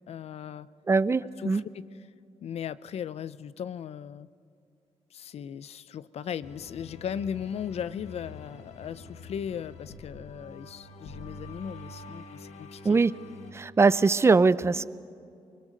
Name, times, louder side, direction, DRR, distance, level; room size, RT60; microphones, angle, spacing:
voice 1, 0.0-0.7 1.4-1.9 2.4-4.3 5.1-13.0, left 8 dB, 70° left, 16 dB, 0.6 m, -37 dB
voice 2, 0.9-1.6 12.8-13.1 13.5-14.8, right 4 dB, 25° right, 17 dB, 0.5 m, -21 dB
sound 1, 6.4-13.5, left 2 dB, 90° left, 1.6 m, -46 dB
24.5 x 22.0 x 6.6 m, 2.5 s
wide cardioid pair, 125°, 11 cm